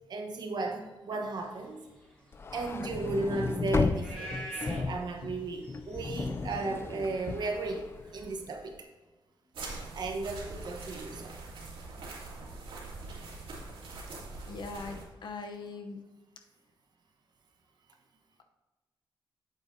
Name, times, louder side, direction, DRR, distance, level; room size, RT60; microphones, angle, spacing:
voice 1, 0.1-1.8 2.5-8.8 9.9-11.3, right 3 dB, 55° right, 3 dB, 1.1 m, -35 dB
sound 1, 1.4-8.2, equal, 10° left, 2.8 m, -48 dB
sound 2, 2.3-8.6, left 4 dB, 30° left, 0.4 m, -34 dB
sound 3, 9.5-15.0, right 3 dB, 85° right, 2.4 m, -43 dB
voice 2, 14.5-16.0, left 3 dB, 60° left, 5 dB, 0.8 m, -41 dB
8.9 x 8.2 x 2.8 m, 1.2 s
wide cardioid pair, 160°, 9 cm